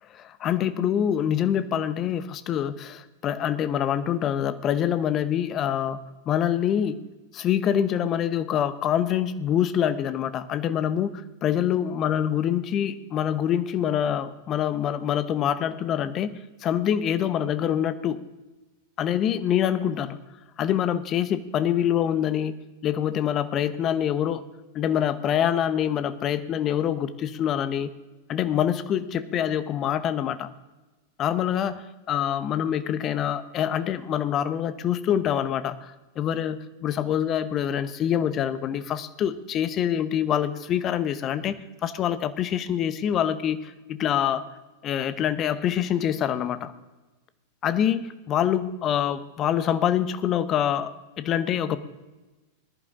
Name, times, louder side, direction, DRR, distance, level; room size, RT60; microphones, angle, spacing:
voice 1, 0.2-6.0 6.3-7.0 7.3-18.2 19.0-20.2 20.6-22.6 22.8-24.4 24.7-27.9 28.3-30.5 31.2-44.4 44.8-46.7 47.6-50.9 51.2-51.8, left 9 dB, 30° left, 13 dB, 0.9 m, -25 dB
20.0 x 11.0 x 3.7 m, 1.1 s
figure-of-eight pair, 90°, 0 cm